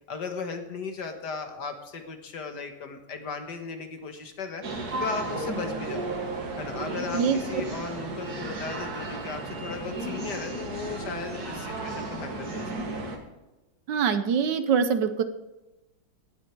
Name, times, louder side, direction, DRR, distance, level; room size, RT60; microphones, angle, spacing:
voice 1, 0.1-4.6 5.0-6.1 6.6-7.2 7.5-12.7, left 4 dB, 60° left, 6 dB, 1.9 m, -36 dB
sound 1, 4.6-13.2, right 2 dB, 55° right, 2.2 m, -34 dB
voice 2, 13.9-15.2, right 6 dB, 70° right, 10 dB, 1.4 m, -24 dB
18.0 x 8.2 x 4.6 m, 1.1 s
omnidirectional pair, 2.1 m